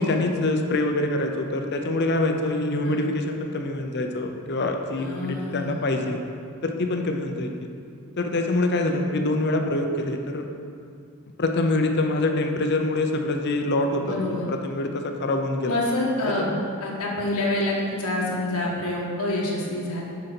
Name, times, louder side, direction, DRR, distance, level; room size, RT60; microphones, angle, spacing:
voice 1, 0.0-6.2 6.6-7.5 8.2-10.5 11.4-15.8 16.4-16.6, left 2 dB, 50° left, 4 dB, 0.7 m, -25 dB
voice 2, 5.0-5.8 14.0-14.5 15.7-16.5 16.8-20.0, left 1 dB, 85° left, -4 dB, 1.4 m, -27 dB
6.6 x 5.5 x 5.9 m, 2.4 s
head